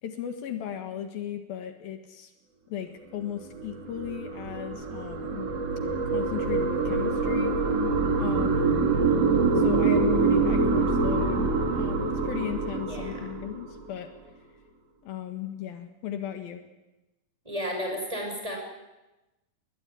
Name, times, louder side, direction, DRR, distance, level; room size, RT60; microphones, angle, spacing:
voice 1, 0.0-2.3 2.7-5.5 6.1-7.5 8.2-8.8 9.6-14.1 15.0-16.6, left 10 dB, 75° left, 7 dB, 3.4 m, -36 dB
sound 1, 3.3-13.9, right 4 dB, 45° right, 2.8 m, -25 dB
voice 2, 12.9-13.3 17.4-18.6, equal, 10° right, 1 dB, 6.2 m, -33 dB
21.0 x 20.5 x 9.8 m, 1.0 s
omnidirectional pair, 4.3 m